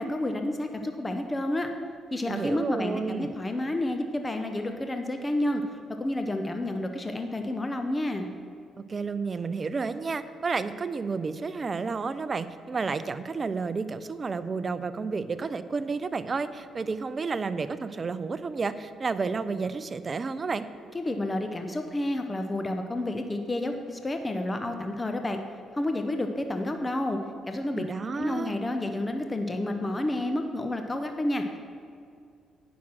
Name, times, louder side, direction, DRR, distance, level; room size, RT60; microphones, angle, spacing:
voice 1, 0.0-1.7 2.1-8.3 20.9-25.4 25.7-27.2 27.5-27.9 28.2-31.6, left 1 dB, 20° left, 5 dB, 0.7 m, -30 dB
voice 2, 2.3-3.3 8.9-20.7 27.8-28.6, right 4 dB, 35° right, 13 dB, 0.5 m, -31 dB
9.4 x 6.0 x 6.2 m, 2.3 s
supercardioid pair, 75°, 0 cm